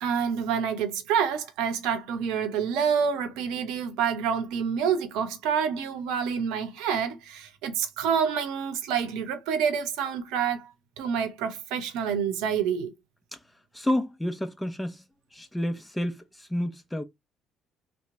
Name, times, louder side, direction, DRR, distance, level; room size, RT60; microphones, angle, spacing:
voice 1, 0.0-10.7 11.0-12.9, right 7 dB, 75° right, 0.8 m, -27 dB
voice 2, 13.7-15.0 15.3-17.0, left 1 dB, 10° left, 0.8 m, -30 dB
2.9 x 2.2 x 3.7 m
hypercardioid pair, 55°, 0 cm